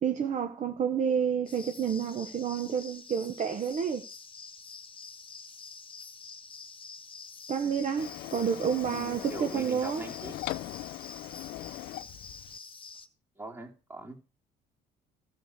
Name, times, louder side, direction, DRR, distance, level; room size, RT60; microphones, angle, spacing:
voice 1, 0.0-4.0 7.5-10.0, right 7 dB, 45° right, 1.1 m, -29 dB
sound 1, 1.5-13.1, left 4 dB, 30° left, 1.4 m, -47 dB
Printer, 8.0-12.6, left 16 dB, 80° left, 0.6 m, -40 dB
voice 2, 8.8-10.4 13.4-14.2, right 2 dB, 15° right, 2.8 m, -42 dB
12.5 x 6.5 x 6.6 m
cardioid pair, 110°, 17 cm